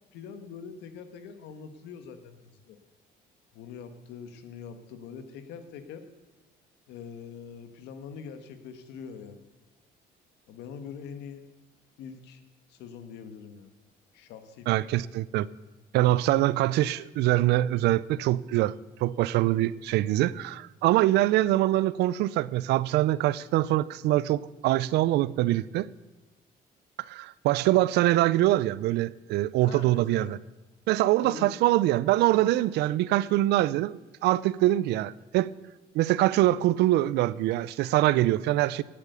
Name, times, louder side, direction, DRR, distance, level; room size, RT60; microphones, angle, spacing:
voice 1, 0.1-2.8 3.5-6.0 6.9-9.4 10.5-11.4 12.0-12.4 12.7-13.7 14.1-14.7 29.6-30.4 31.2-31.6, left 6 dB, 85° left, 1.6 m, -43 dB
voice 2, 14.7-15.5 15.9-18.7 19.0-25.9 27.1-30.4 30.9-35.5 35.9-38.8, right 15 dB, 80° right, 0.5 m, -24 dB
17.5 x 8.6 x 6.9 m
cardioid pair, 110°, 17 cm